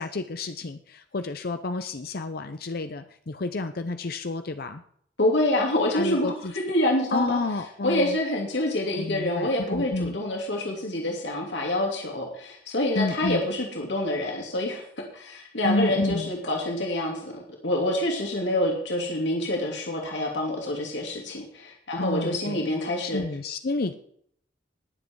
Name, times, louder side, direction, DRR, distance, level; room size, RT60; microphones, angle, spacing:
voice 1, 0.0-4.8 5.9-6.5 7.1-8.2 8.9-10.2 12.9-13.4 15.6-16.3 22.0-22.7 23.0-23.9, left 2 dB, 55° left, 9 dB, 0.7 m, -30 dB
voice 2, 5.2-7.4 7.8-14.8 15.1-23.2, left 1 dB, 80° left, 0 dB, 2.8 m, -27 dB
20.0 x 7.7 x 4.7 m, 0.64 s
head